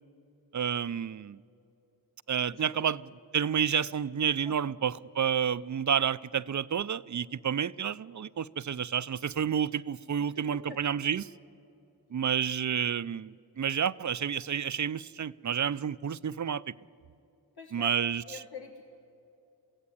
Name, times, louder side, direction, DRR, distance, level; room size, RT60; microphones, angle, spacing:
voice 1, 0.5-1.4 2.3-11.3 12.1-16.7 17.7-18.4, right 8 dB, 50° right, 0.5 m, -30 dB
voice 2, 2.5-2.9 4.4-4.5 10.4-10.8 17.6-18.8, left 5 dB, 75° left, 1.9 m, -45 dB
23.5 x 16.0 x 9.8 m
wide cardioid pair, 65°, 39 cm